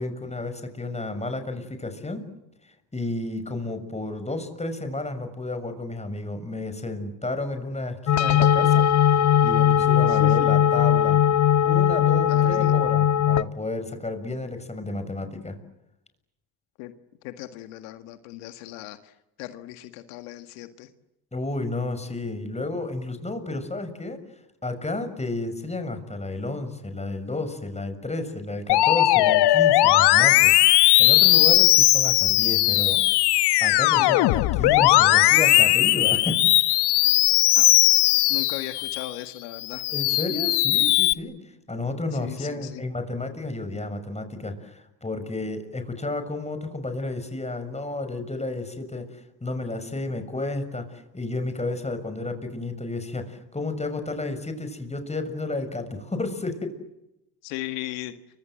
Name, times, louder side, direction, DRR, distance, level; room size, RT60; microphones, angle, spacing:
voice 1, 0.0-2.2 2.9-9.1 9.4-11.2 11.6-15.6 21.3-24.2 24.6-33.0 33.6-36.6 39.9-41.4 41.7-56.8, left 2 dB, 15° left, 8 dB, 6.6 m, -32 dB
sound 1, 8.1-13.4, left 10 dB, 40° left, 1.0 m, -19 dB
voice 2, 10.0-10.5 12.3-12.8 16.8-16.9 17.2-20.9 33.9-34.3 37.6-37.9 38.3-39.8 42.2-42.8 57.4-58.1, left 15 dB, 90° left, 9 dB, 1.9 m, -37 dB
Musical instrument, 28.7-39.1 39.6-41.1, left 17 dB, 70° left, 1.0 m, -18 dB
30.0 x 25.5 x 7.8 m, 0.89 s
supercardioid pair, 80°, 42 cm